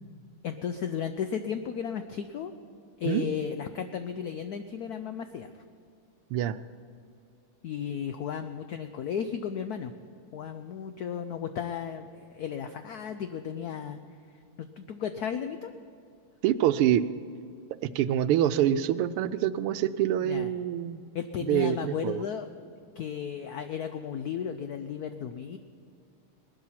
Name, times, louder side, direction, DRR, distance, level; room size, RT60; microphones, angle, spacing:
voice 1, 0.4-2.5 3.0-5.5 7.6-9.9 10.3-14.0 14.6-15.7 20.2-20.5 21.1-22.5 23.0-25.6, left 8 dB, 90° left, 8 dB, 0.8 m, -34 dB
voice 2, 16.4-17.0 17.9-21.0 21.4-22.2, right 11 dB, 85° right, 13 dB, 1.5 m, -25 dB
19.5 x 12.0 x 5.8 m, 2.5 s
omnidirectional pair, 2.4 m